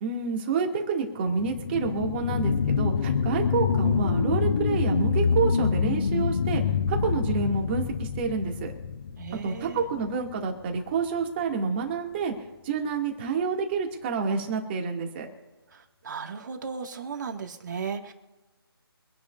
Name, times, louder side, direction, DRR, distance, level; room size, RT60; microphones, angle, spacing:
voice 1, 0.0-8.7 9.4-12.3 12.6-15.3, right 5 dB, 25° right, 1 dB, 2.4 m, -28 dB
sound 1, 1.2-10.3 10.8-10.9, left 6 dB, 35° left, 0.7 m, -26 dB
voice 2, 9.2-9.8 15.7-18.1, right 5 dB, 45° right, 3 dB, 2.0 m, -36 dB
25.5 x 10.0 x 2.6 m, 1.2 s
figure-of-eight pair, 155°, 13 cm